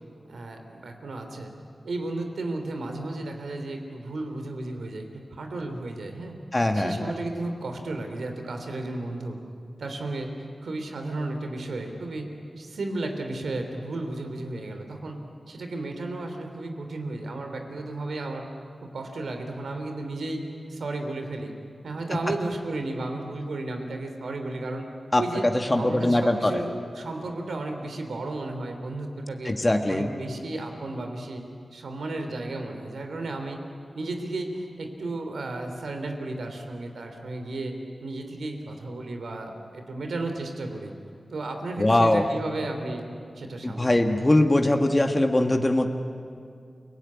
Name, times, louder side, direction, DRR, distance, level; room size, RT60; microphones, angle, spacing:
voice 1, 0.3-1.5 1.8-5.0 5.3-6.4 6.7-9.4 9.8-10.3 10.6-12.3 12.6-15.2 15.5-18.4 18.9-20.4 20.7-21.5 21.8-24.9 25.2-25.4 25.8-26.7 26.9-29.5 29.9-31.4 31.7-33.6 33.9-37.7 38.0-40.9 41.3-43.0 43.3-44.0, right 2 dB, 90° right, 5 dB, 3.3 m, -33 dB
voice 2, 6.5-7.1 22.1-22.2 25.1-25.2 25.7-26.6 29.4-30.1 41.8-42.2 43.6-45.9, left 1 dB, 25° left, 4 dB, 1.6 m, -21 dB
29.5 x 18.0 x 9.8 m, 2.4 s
wide cardioid pair, 70°, 0 cm